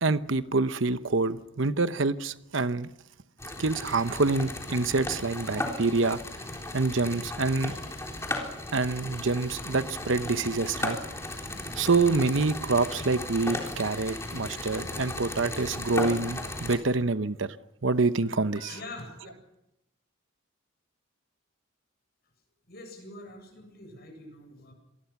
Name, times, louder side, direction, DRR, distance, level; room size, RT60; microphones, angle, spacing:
voice 1, 0.0-2.9 3.6-6.2 6.7-7.8 8.7-11.0 11.7-17.6 17.8-18.7, right 3 dB, 65° right, 0.9 m, -26 dB
sound 1, 3.4-16.8, left 2 dB, 15° left, 3.7 m, -36 dB
voice 2, 18.5-19.3 22.7-24.7, left 2 dB, 50° left, 7.9 m, -44 dB
26.5 x 20.0 x 6.0 m
head